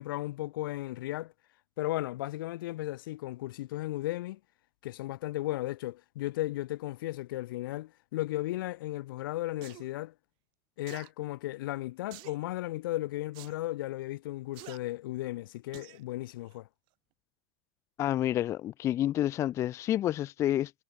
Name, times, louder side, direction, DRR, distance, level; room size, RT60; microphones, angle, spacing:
voice 1, 0.0-1.3 1.8-4.4 4.8-10.1 10.8-16.7, left 17 dB, 75° left, 1.6 m, -35 dB
sound 1, 9.6-9.8 10.9-11.1 12.1-12.4 13.3-13.5 14.5-14.8 15.7-16.0 16.5-16.6, right 27 dB, 45° right, 7.3 m, -48 dB
voice 2, 18.0-20.7, left 12 dB, 25° left, 0.5 m, -29 dB
supercardioid pair, 155°, 11 cm